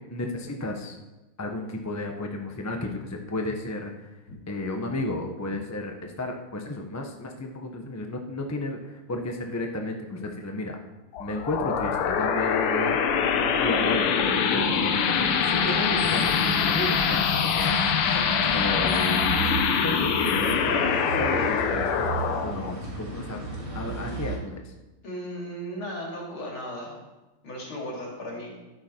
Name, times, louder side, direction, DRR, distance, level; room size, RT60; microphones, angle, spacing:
voice 1, 0.1-1.0 1.4-4.2 4.5-10.8 11.2-13.0 13.6-14.2 14.4-17.9 18.5-23.4 23.7-24.7, left 2 dB, 15° left, 3 dB, 0.6 m, -33 dB
sound 1, 11.1-24.3, left 6 dB, 85° left, 1.8 m, -24 dB
sound 2, 15.6-24.4, right 4 dB, 80° right, 4.0 m, -35 dB
voice 2, 25.0-27.0 27.4-28.5, equal, 70° left, -2 dB, 3.7 m, -35 dB
12.5 x 9.4 x 4.6 m, 1.1 s
omnidirectional pair, 2.4 m